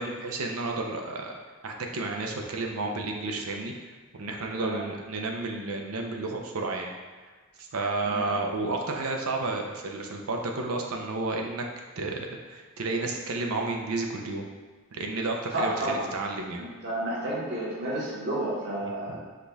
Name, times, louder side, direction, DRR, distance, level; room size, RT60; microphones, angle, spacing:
voice 1, 0.0-1.3 1.6-6.9 7.6-11.6 12.0-14.4 14.9-16.6 19.1-19.2, right 3 dB, 80° right, 2 dB, 0.6 m, -31 dB
voice 2, 15.5-16.1 16.6-19.2, right 1 dB, 50° right, -7 dB, 1.3 m, -31 dB
5.1 x 2.3 x 4.0 m, 1.4 s
head